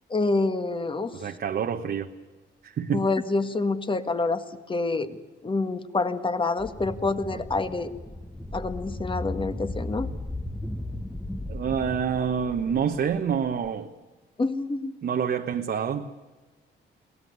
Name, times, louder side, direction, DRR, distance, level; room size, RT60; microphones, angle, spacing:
voice 1, 0.1-1.1 2.9-4.4 4.7-5.2 5.4-7.9 8.5-10.1 14.4-14.9, left 3 dB, 25° left, 9 dB, 1.7 m, -27 dB
voice 2, 1.1-2.1 2.6-3.1 7.3-7.4 11.5-13.9 15.0-16.1, right 7 dB, 55° right, 4 dB, 1.3 m, -27 dB
sound 1, 6.6-13.7, left 1 dB, 5° left, 1.1 m, -36 dB
22.5 x 17.5 x 9.6 m, 1.3 s
cardioid pair, 90°, 20 cm